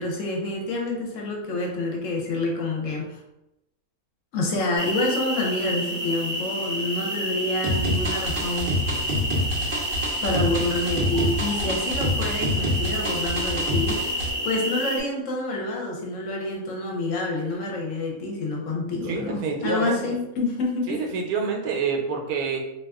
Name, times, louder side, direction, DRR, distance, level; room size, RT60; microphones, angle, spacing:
voice 1, 0.0-3.2 4.3-8.8 10.2-21.0, left 2 dB, 65° left, -1 dB, 0.9 m, -28 dB
sound 1, 4.8-15.0, equal, 10° right, 0.8 m, -29 dB
sound 2, 7.6-14.3, equal, 60° right, 0.5 m, -27 dB
voice 2, 19.1-20.1 20.9-22.7, right 5 dB, 90° right, 2 dB, 1.1 m, -27 dB
2.5 x 2.4 x 3.4 m, 0.89 s
omnidirectional pair, 1.5 m